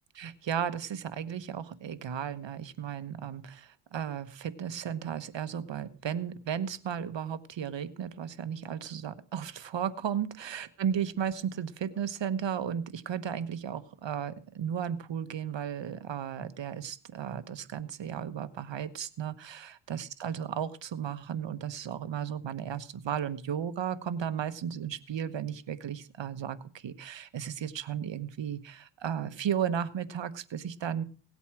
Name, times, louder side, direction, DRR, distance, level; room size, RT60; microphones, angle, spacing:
voice 1, 0.1-31.0, right 8 dB, 65° right, 13 dB, 1.2 m, -34 dB
17.5 x 8.2 x 6.0 m, 0.40 s
cardioid pair, 75°, 47 cm